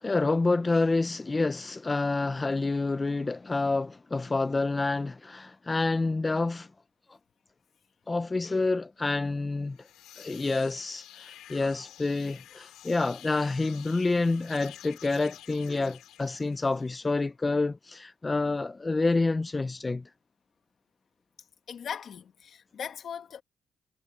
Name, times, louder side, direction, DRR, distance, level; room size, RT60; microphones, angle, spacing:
voice 1, 0.0-6.7 7.1-7.2 8.1-9.8 10.2-20.0, left 3 dB, 25° left, 0.5 m, -28 dB
sound 1, 9.6-17.1, left 13 dB, 85° left, 2.5 m, -50 dB
voice 2, 21.7-23.4, left 7 dB, 60° left, 1.8 m, -39 dB
cardioid pair, 90°, 0 cm